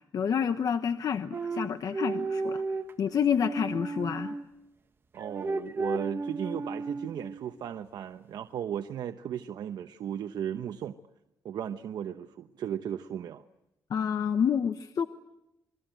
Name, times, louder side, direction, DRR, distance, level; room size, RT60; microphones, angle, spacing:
voice 1, 0.1-2.6 3.0-4.3 13.9-15.1, left 7 dB, 55° left, 1.0 m, -28 dB
sound 1, 1.3-4.5 5.2-7.4, right 3 dB, 30° right, 1.5 m, -34 dB
voice 2, 5.1-11.0 11.4-13.4, right 9 dB, 80° right, 0.9 m, -36 dB
28.5 x 22.0 x 9.1 m
cardioid pair, 130°, 7 cm